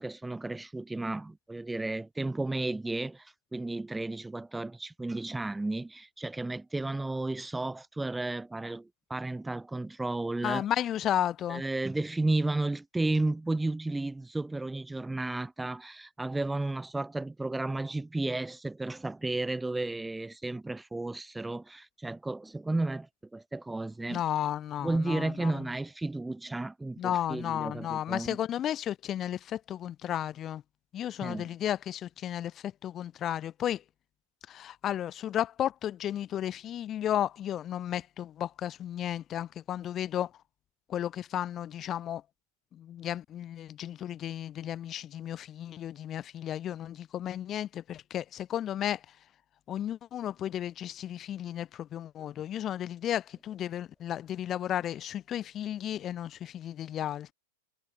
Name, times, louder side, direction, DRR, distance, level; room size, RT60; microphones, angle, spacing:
voice 1, 0.0-10.6 11.5-24.2 24.8-28.4 31.2-31.5, right 2 dB, 5° right, 3.3 m, -33 dB
voice 2, 10.4-11.6 24.1-25.5 27.0-30.6 30.9-33.8 34.5-40.3 40.9-42.2 42.7-49.0 49.7-57.3, left 11 dB, 25° left, 3.8 m, -33 dB
supercardioid pair, 145°, 0 cm